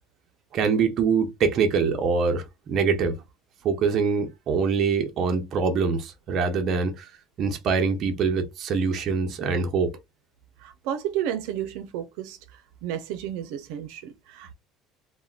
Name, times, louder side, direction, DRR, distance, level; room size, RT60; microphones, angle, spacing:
voice 1, 0.5-3.2 3.6-7.1 7.4-9.9, right 5 dB, 35° right, 0.7 m, -24 dB
voice 2, 10.6-14.5, right 10 dB, 75° right, 0.5 m, -32 dB
3.4 x 2.1 x 2.4 m
cardioid pair, 170°, 0 cm